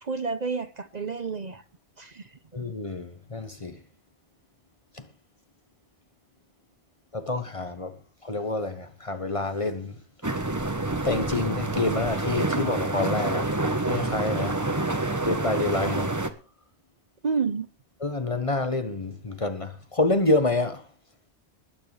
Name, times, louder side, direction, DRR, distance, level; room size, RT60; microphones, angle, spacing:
voice 1, 0.0-1.6 2.0-2.3 17.2-17.7, right 5 dB, 45° right, 0.9 m, -29 dB
voice 2, 2.5-3.8 7.1-8.0 8.2-10.0 11.0-13.5 13.9-14.6 15.2-16.2 18.0-20.8, left 2 dB, 30° left, 1.1 m, -27 dB
sound 1, 10.2-16.3, right 2 dB, 15° right, 1.0 m, -27 dB
20.0 x 9.5 x 3.4 m
omnidirectional pair, 1.1 m